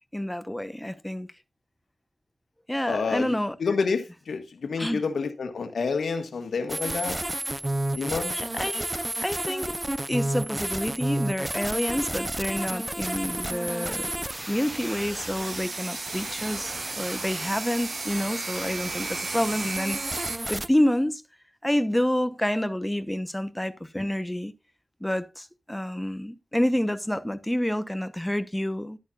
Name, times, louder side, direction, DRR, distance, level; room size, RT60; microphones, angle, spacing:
voice 1, 0.1-1.3 2.7-3.6 4.8-5.0 8.5-8.9 9.2-9.8 10.1-14.1 14.5-21.2 21.6-24.5 25.0-29.0, left 1 dB, 10° left, 0.9 m, -28 dB
voice 2, 2.9-7.2 8.0-8.4, left 4 dB, 90° left, 1.4 m, -29 dB
sound 1, 6.7-20.7, right 1 dB, 20° right, 0.6 m, -32 dB
sound 2, 14.6-20.4, right 4 dB, 65° right, 1.4 m, -36 dB
11.5 x 11.0 x 2.4 m
wide cardioid pair, 90°, 0 cm